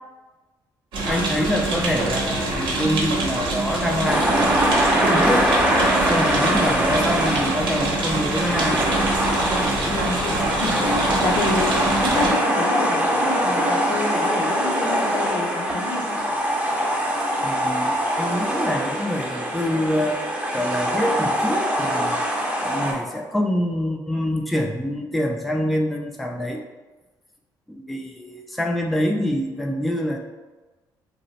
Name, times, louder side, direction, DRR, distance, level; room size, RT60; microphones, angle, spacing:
sound 1, 0.9-12.3, right 2 dB, 80° right, 0.8 m, -25 dB
voice 1, 1.0-4.8 5.1-5.5 6.1-8.8 11.5-11.6 17.4-20.2 20.5-22.2 22.6-26.6 27.7-30.2, equal, ahead, 0 dB, 0.4 m, -25 dB
sound 2, 4.1-22.9, equal, 15° right, 0.8 m, -23 dB
voice 2, 9.9-16.2, left 4 dB, 70° left, 1 dB, 0.5 m, -29 dB
2.9 x 2.0 x 4.0 m, 1.2 s
cardioid pair, 95°, 8 cm